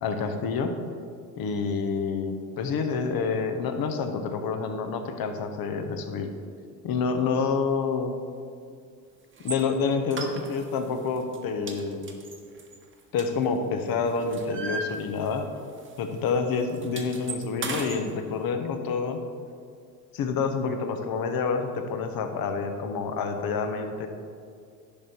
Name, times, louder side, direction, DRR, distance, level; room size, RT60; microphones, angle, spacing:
voice 1, 0.0-0.7 1.4-6.3 6.8-8.1 9.4-12.1 13.1-15.5 16.0-19.2 20.1-24.1, left 5 dB, 50° left, 6 dB, 1.1 m, -28 dB
sound 1, 9.4-9.6 10.1-10.8 11.2-11.4 11.7-13.7 14.0-15.5 15.8-16.0 16.3-18.0, right 3 dB, 25° right, 1.2 m, -36 dB
10.5 x 5.3 x 4.5 m, 2.2 s
hypercardioid pair, 80°, 47 cm